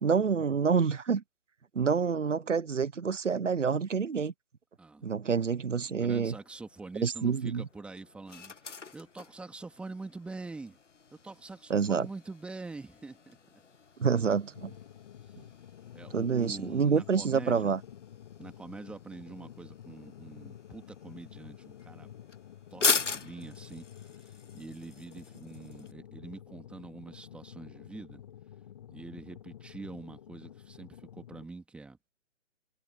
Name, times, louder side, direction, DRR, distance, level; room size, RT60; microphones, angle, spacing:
voice 1, 0.0-1.2 1.7-4.3 5.0-6.3 7.0-7.6 11.7-12.1 14.0-14.7 16.1-17.8, right 6 dB, 70° right, 0.9 m, -27 dB
voice 2, 5.9-10.8 11.1-13.4 14.0-14.2 15.9-17.7 18.4-22.1 22.7-23.8 24.1-28.2 28.9-32.0, right 3 dB, 5° right, 2.7 m, -45 dB
sound 1, 6.3-25.9, left 5 dB, 70° left, 1.2 m, -40 dB
sound 2, 14.5-31.5, left 10 dB, 35° left, 2.8 m, -50 dB
figure-of-eight pair, 140°, 38 cm